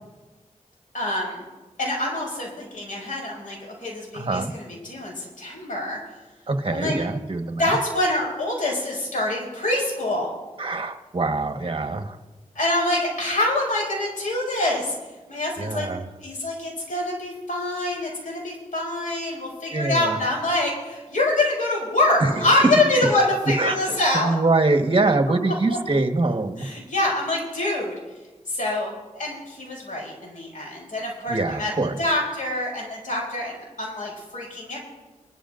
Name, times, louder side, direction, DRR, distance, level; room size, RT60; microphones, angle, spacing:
voice 1, 0.9-1.5 1.8-6.0 6.7-6.9 7.6-10.3 12.5-14.9 15.3-15.9 16.2-24.4 26.6-27.9 28.5-31.7 32.0-34.8, left 1 dB, 80° left, -3 dB, 5.8 m, -25 dB
voice 2, 4.1-4.5 6.5-7.8 10.6-12.2 15.6-16.0 19.7-20.2 22.2-22.3 22.6-22.7 23.6-26.7 31.3-32.0, right 3 dB, 40° right, 6 dB, 1.3 m, -24 dB
23.5 x 13.5 x 2.6 m, 1.2 s
cardioid pair, 60°, 13 cm